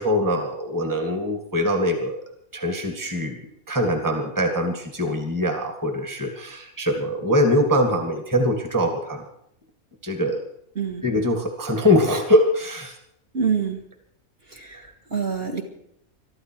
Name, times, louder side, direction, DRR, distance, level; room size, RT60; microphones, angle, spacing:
voice 1, 0.0-2.2 2.5-3.4 3.7-9.3 10.0-10.4 11.0-12.9, left 1 dB, 15° right, 5 dB, 2.0 m, -22 dB
voice 2, 13.3-13.8 14.5-14.8 15.1-15.6, right 6 dB, 45° right, 3 dB, 2.3 m, -25 dB
23.0 x 13.0 x 4.6 m, 0.73 s
omnidirectional pair, 1.5 m